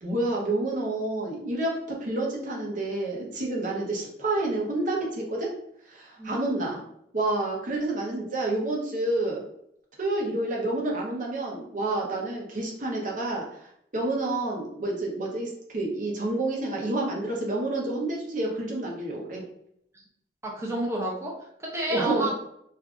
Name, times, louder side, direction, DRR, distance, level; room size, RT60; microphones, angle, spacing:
voice 1, 0.0-5.5 5.9-6.8 7.1-9.4 10.0-19.4 21.9-22.3, right 2 dB, 45° right, -1 dB, 0.8 m, -29 dB
voice 2, 20.4-21.3 21.6-22.3, right 2 dB, 15° right, -3 dB, 0.7 m, -30 dB
2.6 x 2.4 x 3.6 m, 0.74 s
head